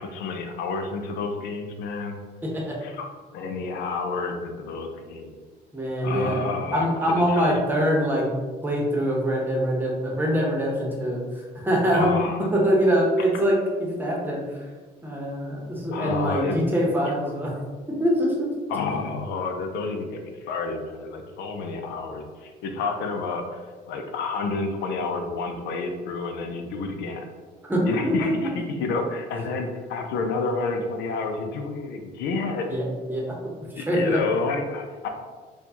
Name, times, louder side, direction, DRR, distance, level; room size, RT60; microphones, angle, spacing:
voice 1, 0.0-2.2 2.8-3.0 3.3-5.4 6.0-7.6 11.9-12.5 15.9-16.6 18.7-23.6 23.9-27.2 27.8-32.7 33.8-35.1, left 4 dB, 85° left, 4 dB, 0.5 m, -30 dB
voice 2, 2.4-2.8 5.7-6.4 6.7-8.3 8.6-14.6 15.0-17.5 18.0-18.5 27.6-28.3 32.7-32.8 33.1-33.2 33.7-34.2, equal, 10° right, -3 dB, 0.9 m, -24 dB
4.3 x 2.3 x 2.8 m, 1.4 s
cardioid pair, 110°, 17 cm